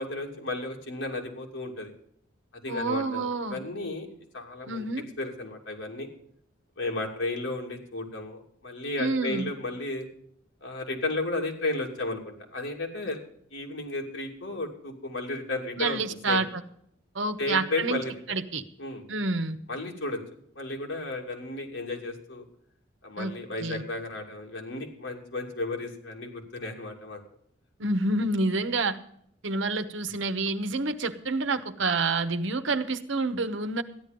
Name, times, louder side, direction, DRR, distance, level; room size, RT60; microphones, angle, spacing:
voice 1, 0.0-1.9 2.6-4.1 4.3-4.9 5.2-6.1 6.8-10.1 10.6-13.2 13.5-16.0 16.3-16.4 17.4-18.1 18.8-19.0 19.7-20.2 20.5-22.4 23.0-27.2, left 2 dB, 90° left, 1 dB, 2.8 m, -33 dB
voice 2, 2.7-3.6 4.7-5.0 9.0-9.5 15.8-16.6 17.1-18.0 18.3-18.6 19.1-19.6 23.2-23.3 23.6-23.8 27.8-29.0 29.4-33.8, right 3 dB, 80° right, 11 dB, 1.0 m, -28 dB
13.5 x 10.5 x 5.2 m, 0.69 s
head